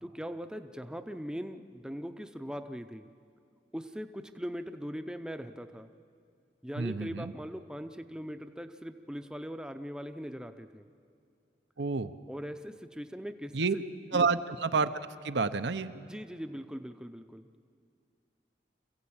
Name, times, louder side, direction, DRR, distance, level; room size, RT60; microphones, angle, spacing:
voice 1, 0.0-3.1 3.7-5.9 6.6-10.9 12.3-13.8 14.1-14.3 16.0-17.5, equal, 5° right, 8 dB, 0.6 m, -40 dB
voice 2, 6.8-7.3 11.8-12.1 13.5-13.7 14.1-14.9 15.2-15.9, right 4 dB, 85° right, 11 dB, 0.8 m, -29 dB
26.5 x 15.5 x 8.7 m, 2.4 s
head